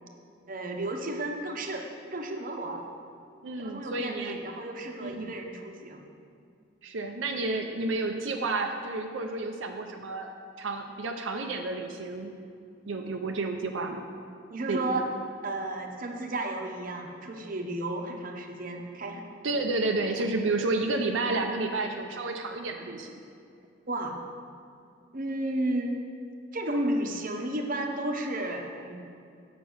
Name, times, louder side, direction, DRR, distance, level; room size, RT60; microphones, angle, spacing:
voice 1, 0.5-2.8 3.6-6.1 14.5-15.1 15.4-19.2 23.9-24.2 25.1-26.0 26.5-29.0, right 1 dB, 45° right, 2 dB, 0.9 m, -33 dB
voice 2, 3.4-4.4 5.0-5.3 6.8-10.3 10.6-12.3 12.9-14.0 14.7-15.0 19.4-23.2, right 3 dB, 85° right, 3 dB, 0.6 m, -31 dB
8.2 x 5.9 x 6.2 m, 2.4 s
head